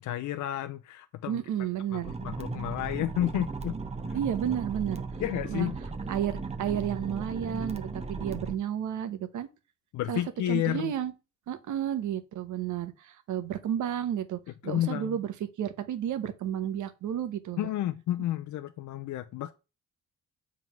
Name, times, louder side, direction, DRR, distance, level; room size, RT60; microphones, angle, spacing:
voice 1, 0.0-1.4 1.9-3.8 4.1-4.2 5.2-5.8 9.9-10.9 14.6-15.2 17.6-19.5, left 13 dB, 75° left, 0.6 m, -31 dB
voice 2, 1.3-2.1 4.1-5.0 5.5-5.7 6.1-9.5 10.1-10.2 10.5-11.1 11.5-17.7, right 10 dB, 75° right, 1.1 m, -32 dB
sound 1, 2.0-8.5, right 3 dB, 20° right, 0.9 m, -36 dB
7.3 x 3.7 x 5.9 m
cardioid pair, 90°, 30 cm